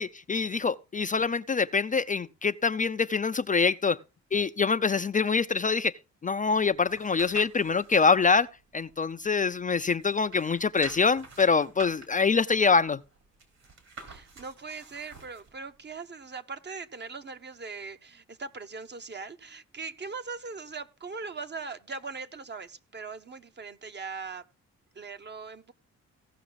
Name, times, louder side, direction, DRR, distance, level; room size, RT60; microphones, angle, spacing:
voice 1, 0.0-4.0 4.3-8.5 8.7-13.0, left 5 dB, 25° left, 0.5 m, -25 dB
sound 1, 6.5-8.1 8.6-9.7 10.0-15.5 16.0-16.1, right 4 dB, 65° right, 4.1 m, -48 dB
voice 2, 14.1-24.4 24.9-25.7, right 4 dB, 35° right, 0.9 m, -40 dB
16.5 x 5.8 x 4.0 m
cardioid pair, 70°, 29 cm